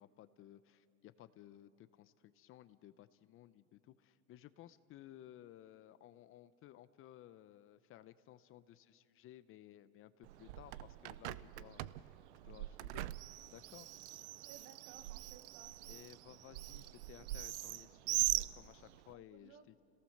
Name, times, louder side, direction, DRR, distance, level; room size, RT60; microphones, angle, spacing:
voice 1, 0.0-12.2 12.4-13.1 13.5-13.9 15.8-19.8, left 12 dB, 40° left, 14 dB, 0.7 m, -58 dB
Bird, 10.2-19.1, right 16 dB, 90° right, 0.6 m, -42 dB
voice 2, 14.4-15.7 19.1-19.8, right 9 dB, 45° right, 10 dB, 1.5 m, -59 dB
30.0 x 18.0 x 6.5 m, 2.6 s
supercardioid pair, 120°, 33 cm